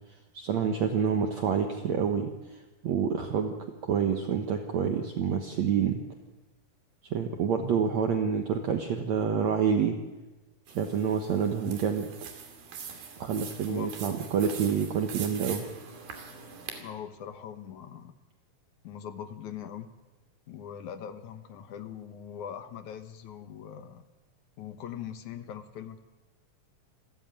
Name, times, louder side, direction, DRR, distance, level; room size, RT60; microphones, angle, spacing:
voice 1, 0.3-2.3 2.8-3.6 3.8-6.0 7.1-10.0 10.7-12.1 13.2-15.7, right 7 dB, 60° right, 5 dB, 2.2 m, -27 dB
sound 1, 10.7-16.8, right 6 dB, 80° right, 4.5 m, -43 dB
voice 2, 16.8-18.1 18.8-19.9 20.5-24.0 24.6-26.0, left 9 dB, 65° left, 10 dB, 2.3 m, -41 dB
28.0 x 14.0 x 9.1 m, 1.1 s
omnidirectional pair, 4.2 m